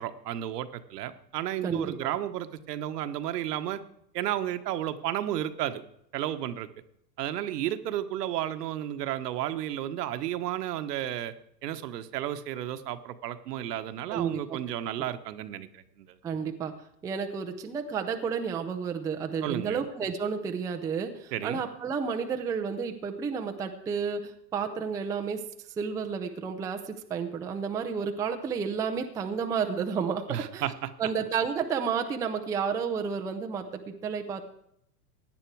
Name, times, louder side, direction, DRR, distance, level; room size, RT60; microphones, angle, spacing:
voice 1, 0.0-3.8 4.1-5.8 6.1-6.7 7.2-11.3 11.6-16.1 19.4-19.8 21.3-21.6 30.3-30.9, right 12 dB, 70° right, 10 dB, 1.2 m, -32 dB
voice 2, 1.6-2.1 14.1-14.6 16.2-16.7 17.0-25.4 25.8-30.7 31.0-34.5, right 6 dB, 5° right, 4 dB, 0.4 m, -31 dB
16.5 x 10.0 x 4.6 m, 0.73 s
hypercardioid pair, 130°, 50 cm